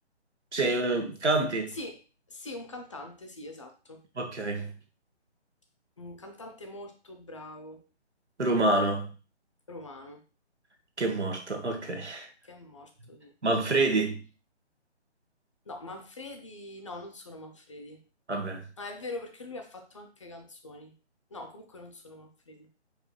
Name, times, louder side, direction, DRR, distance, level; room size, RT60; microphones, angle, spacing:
voice 1, 0.5-1.7 4.2-4.7 8.4-9.1 11.0-12.3 13.4-14.2 18.3-18.6, right 2 dB, 75° right, 1.4 m, -27 dB
voice 2, 1.7-2.0 2.3-4.0 6.0-7.8 9.7-10.2 12.4-13.3 15.7-18.0 18.8-20.9 21.3-22.7, left 2 dB, 30° left, 0.6 m, -43 dB
4.9 x 4.8 x 2.2 m
figure-of-eight pair, 145°, 35 cm